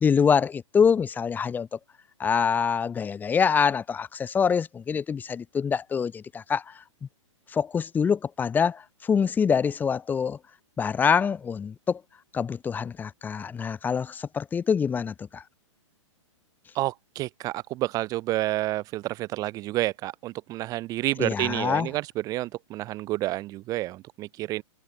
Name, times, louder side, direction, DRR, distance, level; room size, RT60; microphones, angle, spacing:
voice 1, 0.0-1.8 2.2-6.8 7.5-10.4 10.8-12.0 12.3-15.4 21.2-21.9, left 6 dB, 10° left, 1.2 m, -25 dB
voice 2, 16.7-24.6, right 17 dB, 20° right, 0.7 m, -29 dB
hypercardioid pair, 150°, 17 cm